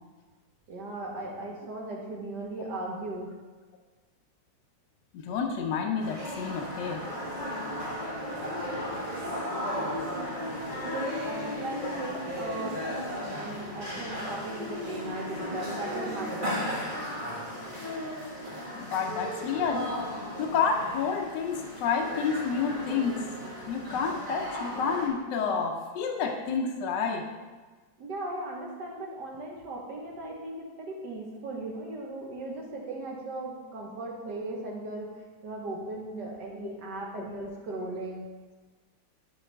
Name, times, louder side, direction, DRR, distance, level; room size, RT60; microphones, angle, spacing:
voice 1, 0.7-3.3 10.8-12.8 13.4-16.8 28.0-35.1 35.4-38.2, right 2 dB, 65° right, -1 dB, 1.8 m, -37 dB
voice 2, 5.1-7.1 11.8-11.9 18.7-19.9 20.4-23.2 23.7-27.3 36.6-36.7, left 5 dB, 75° left, 2 dB, 1.3 m, -29 dB
sound 1, 6.0-25.1, equal, 25° right, 1.7 m, -35 dB
11.5 x 4.7 x 3.3 m, 1.3 s
omnidirectional pair, 2.1 m